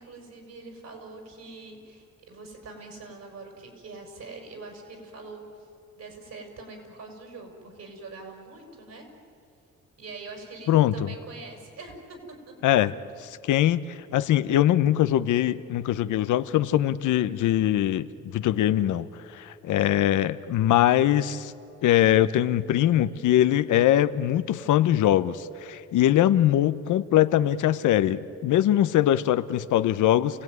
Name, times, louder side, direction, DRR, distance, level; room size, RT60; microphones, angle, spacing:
voice 1, 0.0-5.4 6.0-9.1 10.0-12.2 12.5-12.6, right 3 dB, 60° right, 3 dB, 6.2 m, -43 dB
voice 2, 10.7-11.1 12.6-12.9 13.4-19.1 19.3-21.5 21.8-30.4, left 12 dB, 80° left, 13 dB, 0.9 m, -22 dB
29.5 x 17.0 x 9.5 m, 2.6 s
cardioid pair, 90°, 30 cm